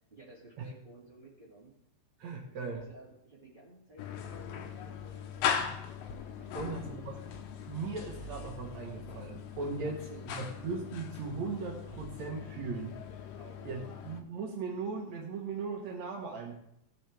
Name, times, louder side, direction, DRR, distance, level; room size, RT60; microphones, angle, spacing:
voice 1, 0.1-1.7 2.4-5.5 6.3-7.3 9.8-10.5 13.3-13.8, right 2 dB, 45° right, -6 dB, 0.6 m, -54 dB
voice 2, 2.2-2.8 6.5-7.1 7.7-13.0 13.6-16.5, right 4 dB, 85° right, 0 dB, 1.5 m, -38 dB
sound 1, 4.0-14.2, left 7 dB, 80° left, 2.9 m, -39 dB
17.5 x 7.9 x 3.4 m, 0.78 s
omnidirectional pair, 5.2 m